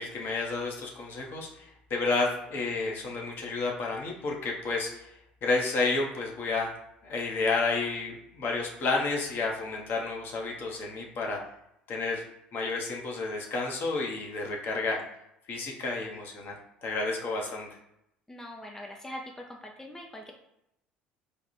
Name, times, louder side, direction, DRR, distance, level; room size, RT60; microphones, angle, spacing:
voice 1, 0.0-5.1 5.4-6.7 7.0-11.4 11.9-12.2 12.5-15.0 15.5-16.5 16.8-17.7, left 3 dB, 45° left, 0 dB, 1.0 m, -31 dB
voice 2, 18.3-20.3, left 1 dB, 10° left, 0 dB, 0.6 m, -42 dB
3.4 x 2.5 x 4.2 m, 0.82 s
figure-of-eight pair, 60°, 5 cm